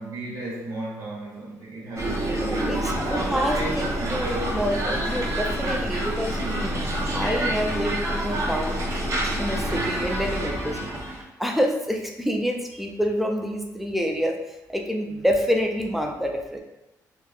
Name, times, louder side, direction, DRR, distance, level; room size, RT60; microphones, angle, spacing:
voice 1, 0.0-4.6, right 2 dB, 65° right, -5 dB, 1.4 m, -35 dB
sound 1, 2.0-11.2, right 1 dB, 45° right, 0.6 m, -27 dB
voice 2, 2.4-6.4 7.1-8.8 9.4-11.1 11.4-14.4 14.7-16.6, equal, ahead, 2 dB, 0.4 m, -27 dB
3.3 x 2.2 x 2.3 m, 0.96 s
cardioid pair, 115°, 7 cm